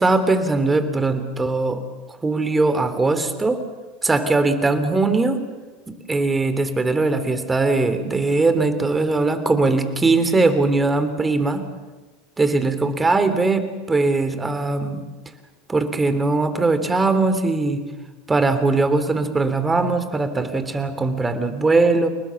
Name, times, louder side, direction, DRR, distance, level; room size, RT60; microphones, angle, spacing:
voice 1, 0.0-1.8 2.2-3.6 4.0-5.4 5.9-11.6 12.4-15.0 15.7-17.8 18.3-22.1, right 3 dB, 15° right, 10 dB, 3.3 m, -20 dB
30.0 x 19.5 x 7.2 m, 1.2 s
hypercardioid pair, 85°, 0 cm